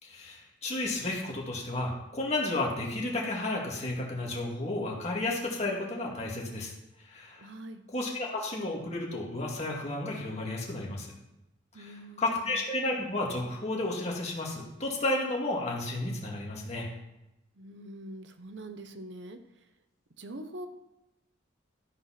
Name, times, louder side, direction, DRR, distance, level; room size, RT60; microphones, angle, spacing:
voice 1, 0.0-6.7 7.1-7.5 7.9-11.1 11.8-16.9, left 2 dB, 35° left, -1 dB, 2.2 m, -32 dB
voice 2, 7.4-7.8 11.7-12.5 17.5-19.4 20.2-20.7, right 1 dB, 70° right, 8 dB, 0.9 m, -44 dB
13.0 x 5.7 x 5.9 m, 0.91 s
head